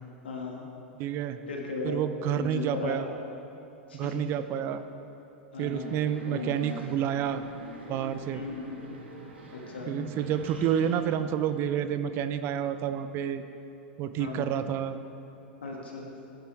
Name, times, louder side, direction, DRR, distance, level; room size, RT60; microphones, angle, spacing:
voice 1, 0.2-0.6 1.5-2.0 2.3-3.0 3.9-4.1 5.5-5.9 6.2-6.5 8.3-8.7 9.5-9.9 14.2-14.5 15.6-16.1, left 4 dB, 80° left, -1 dB, 2.1 m, -36 dB
voice 2, 1.0-1.4 1.8-3.1 3.9-4.8 5.6-7.4 7.9-8.4 9.9-13.4 14.0-15.0, right 9 dB, 45° right, 11 dB, 0.7 m, -29 dB
sound 1, 5.7-11.1, equal, 85° right, 1.9 m, -42 dB
15.0 x 11.5 x 3.6 m, 2.9 s
hypercardioid pair, 95°, 6 cm